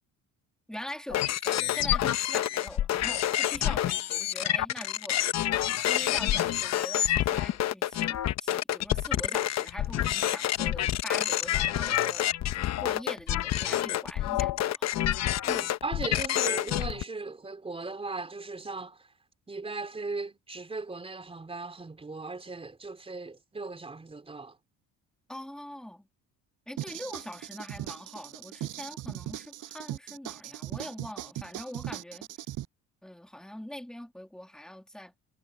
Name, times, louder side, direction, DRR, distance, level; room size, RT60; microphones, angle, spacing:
voice 1, 0.7-5.3 5.9-12.3 12.5-15.0 15.6-15.7 25.3-26.1 26.7-32.3 33.0-35.1, left 1 dB, ahead, 2.2 m, -43 dB
sound 1, 1.1-17.0, left 12 dB, 50° left, 0.9 m, -28 dB
voice 2, 15.5-19.0 19.5-24.6, right 3 dB, 15° right, 4.4 m, -38 dB
sound 2, 26.8-32.6, right 14 dB, 65° right, 6.9 m, -39 dB
cardioid pair, 125°, 33 cm